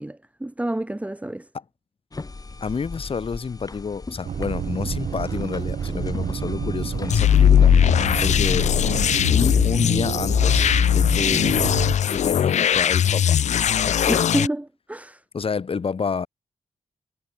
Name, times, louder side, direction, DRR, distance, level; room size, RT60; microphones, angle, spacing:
voice 1, 0.0-1.5 14.1-15.2, right 1 dB, 10° right, 1.6 m, -29 dB
sound 1, 2.1-8.7, left 3 dB, 30° left, 7.7 m, -37 dB
voice 2, 2.6-7.7 8.2-8.7 9.1-11.8 12.1-13.4 13.8-14.3 15.3-16.3, left 5 dB, 50° left, 4.4 m, -29 dB
sound 2, 4.2-12.0, right 7 dB, 65° right, 1.7 m, -29 dB
sound 3, 7.1-14.5, left 9 dB, 75° left, 1.0 m, -19 dB
cardioid pair, 75°, 12 cm